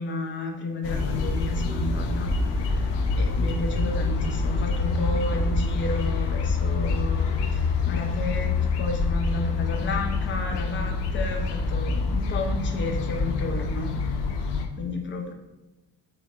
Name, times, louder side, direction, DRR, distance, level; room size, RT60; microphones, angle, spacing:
voice 1, 0.0-14.0 14.7-15.3, left 3 dB, 30° left, 3 dB, 0.5 m, -32 dB
sound 1, 0.8-14.7, left 3 dB, 85° left, 0.6 m, -26 dB
4.9 x 3.3 x 2.4 m, 1.0 s
cardioid pair, 180°, 40 cm